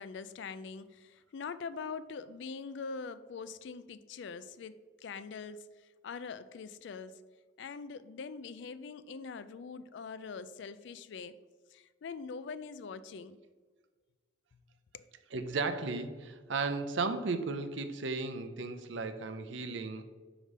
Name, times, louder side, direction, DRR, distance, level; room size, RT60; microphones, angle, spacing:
voice 1, 0.0-7.2 7.6-11.4 11.7-13.4 14.9-15.1, left 5 dB, 65° left, 0.3 m, -43 dB
voice 2, 15.3-20.0, right 4 dB, 70° right, 0.6 m, -35 dB
5.1 x 4.9 x 5.3 m
head